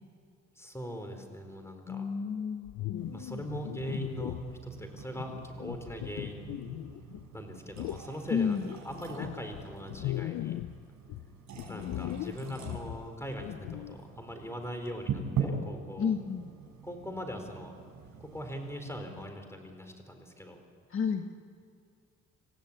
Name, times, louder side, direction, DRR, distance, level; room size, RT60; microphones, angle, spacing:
voice 1, 0.6-2.0 3.1-6.5 7.3-8.6 8.8-10.5 11.7-16.1 16.8-17.7 18.2-20.6, equal, 10° left, 5 dB, 4.2 m, -41 dB
voice 2, 1.9-3.3 8.3-8.7 11.7-12.4 16.0-16.5 20.9-21.3, left 6 dB, 45° left, 5 dB, 1.4 m, -32 dB
sound 1, 2.7-4.6 5.2-7.3 7.8-8.1 8.6-10.8 11.1-14.0, left 15 dB, 70° left, 0.6 m, -39 dB
sound 2, 3.0-19.3, right 6 dB, 65° right, 6.5 m, -42 dB
27.0 x 16.0 x 8.7 m, 2.4 s
cardioid pair, 90°, 30 cm